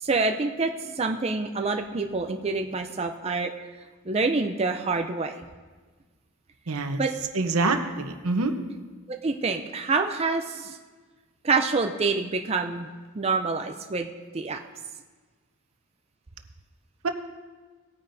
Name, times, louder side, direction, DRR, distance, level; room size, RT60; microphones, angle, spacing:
voice 1, 0.0-3.5 4.1-5.3 6.7-7.2 9.1-10.8 11.4-12.9 13.1-14.1 14.3-14.6, right 4 dB, 30° right, 5 dB, 0.5 m, -27 dB
voice 2, 6.7-7.0 7.3-8.5 17.0-17.1, right 3 dB, 85° right, 6 dB, 0.9 m, -25 dB
19.0 x 9.5 x 2.7 m, 1.4 s
head